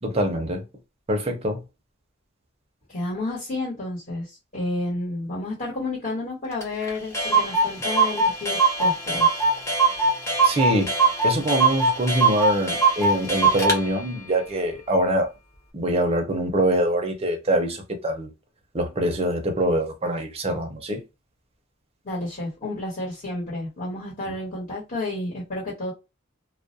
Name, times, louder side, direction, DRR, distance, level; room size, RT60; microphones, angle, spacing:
voice 1, 0.0-0.6 1.1-1.6 10.4-11.0 11.2-15.3 15.7-18.3 18.7-21.0 24.3-24.4, right 1 dB, 30° right, 0.6 m, -24 dB
voice 2, 2.9-9.4 22.0-25.9, left 2 dB, 40° left, 1.2 m, -31 dB
Clock, 6.6-6.7 6.9-7.0 7.1-13.8, right 3 dB, 15° left, 0.6 m, -21 dB
2.3 x 2.1 x 2.6 m
head